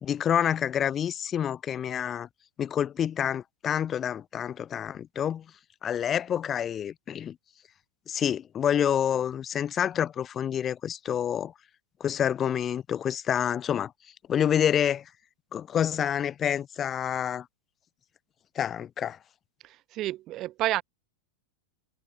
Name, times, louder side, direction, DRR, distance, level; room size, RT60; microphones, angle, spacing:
voice 1, 0.0-2.3 2.6-5.4 5.8-7.4 8.1-11.5 12.0-13.9 14.3-15.0 15.5-17.5 18.6-19.2, left 9 dB, 25° left, 2.3 m, -28 dB
voice 2, 19.6-20.8, right 15 dB, 35° right, 3.3 m, -30 dB
figure-of-eight pair, 90°, 0 cm